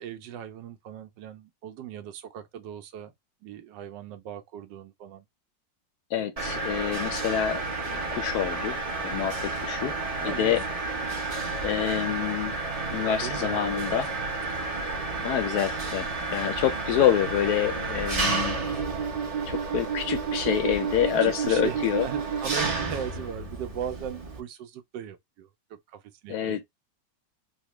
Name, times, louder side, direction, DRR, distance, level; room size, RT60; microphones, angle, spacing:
voice 1, 0.0-3.1 3.4-5.2 10.2-10.7 13.2-13.8 14.2-14.3 20.8-26.6, right 9 dB, 80° right, 1.3 m, -39 dB
voice 2, 6.1-8.8 9.0-10.0 10.2-10.6 11.6-12.6 12.9-14.1 14.6-14.7 15.2-18.6 19.5-22.1 26.3-26.6, left 10 dB, 70° left, 1.0 m, -27 dB
Mechanisms, 6.4-24.4, right 3 dB, 30° right, 0.6 m, -31 dB
3.9 x 2.1 x 3.0 m
omnidirectional pair, 1.9 m